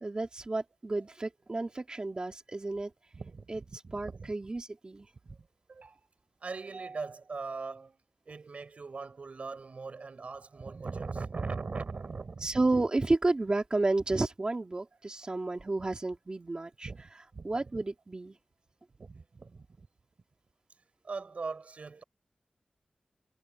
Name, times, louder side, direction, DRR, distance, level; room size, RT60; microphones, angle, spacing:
voice 1, 0.0-2.9 3.5-5.1 12.4-16.9 17.4-18.4, right 2 dB, 35° right, 2.3 m, -31 dB
voice 2, 3.1-4.3 5.2-5.4 5.7-6.1 6.4-8.0 8.3-12.6 16.8-17.0 17.3-17.8 19.0-19.9 21.0-22.0, right 4 dB, 65° right, 4.2 m, -40 dB
wide cardioid pair, 90°, 2 cm